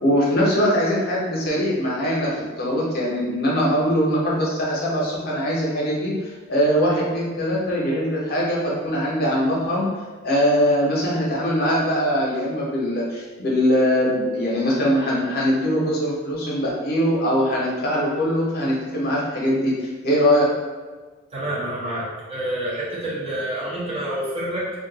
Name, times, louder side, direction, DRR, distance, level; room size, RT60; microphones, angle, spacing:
voice 1, 0.0-2.3 2.6-9.9 10.2-20.5, equal, 50° left, -5 dB, 0.8 m, -22 dB
voice 2, 21.3-24.7, right 1 dB, 30° right, -7 dB, 0.9 m, -28 dB
2.6 x 2.4 x 3.8 m, 1.4 s
head